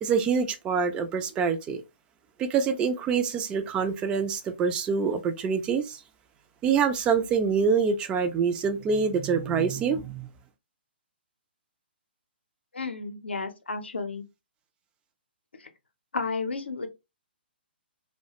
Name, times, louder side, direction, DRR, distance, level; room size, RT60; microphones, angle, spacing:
voice 1, 0.0-1.8 2.4-6.0 6.6-10.3, right 6 dB, 15° right, 0.3 m, -25 dB
voice 2, 12.7-14.3 15.6-15.7 16.1-16.9, left 4 dB, 80° left, 0.5 m, -32 dB
2.3 x 2.1 x 2.7 m
figure-of-eight pair, 130°, 6 cm